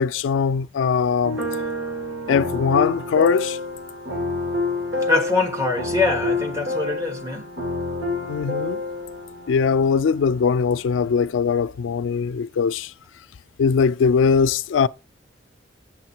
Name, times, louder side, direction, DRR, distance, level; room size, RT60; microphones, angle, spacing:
voice 1, 0.0-1.4 2.3-3.6 8.3-8.8 9.5-12.9 13.6-14.9, left 6 dB, 85° left, 0.3 m, -20 dB
sound 1, 1.2-11.4, left 2 dB, 85° right, 2.4 m, -29 dB
voice 2, 5.1-7.5, left 3 dB, 15° right, 1.4 m, -23 dB
7.7 x 7.3 x 4.4 m
head